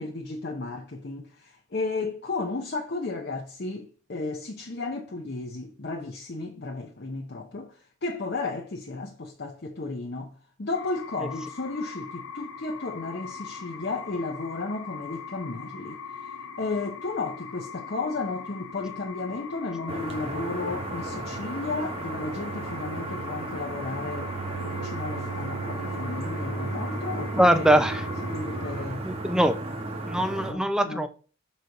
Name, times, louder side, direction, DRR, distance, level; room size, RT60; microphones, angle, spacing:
voice 1, 0.0-10.3 10.6-27.7 28.3-29.1 30.5-31.0, left 3 dB, 50° left, 0.7 m, -34 dB
sound 1, 10.7-28.9, left 4 dB, 75° left, 0.9 m, -40 dB
sound 2, 19.9-30.5, right 2 dB, 30° right, 1.0 m, -34 dB
voice 2, 27.3-28.1 29.0-29.6 30.0-31.1, right 1 dB, 5° right, 0.5 m, -22 dB
6.1 x 4.1 x 5.2 m
head